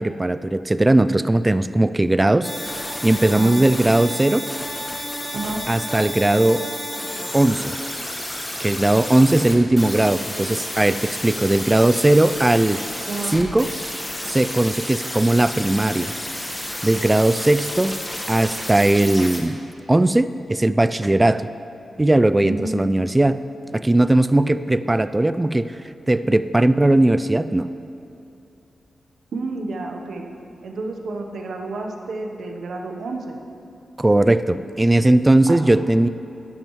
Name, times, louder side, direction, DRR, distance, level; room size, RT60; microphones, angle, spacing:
voice 1, 0.0-4.5 5.7-6.6 7.3-7.8 8.6-12.8 13.3-13.7 14.2-16.1 16.8-17.9 18.3-19.6 19.9-21.5 22.0-23.4 23.7-25.8 26.1-27.7 34.0-36.1, right 1 dB, 20° right, 13 dB, 0.3 m, -18 dB
sound 1, 2.4-19.4, left 1 dB, 15° left, 1.5 m, -31 dB
voice 2, 13.1-13.4 22.4-22.8 29.3-30.2 30.6-33.4 35.5-35.6, right 3 dB, 80° right, 3 dB, 0.9 m, -30 dB
12.0 x 11.0 x 3.2 m, 2.7 s
cardioid pair, 60°, 0 cm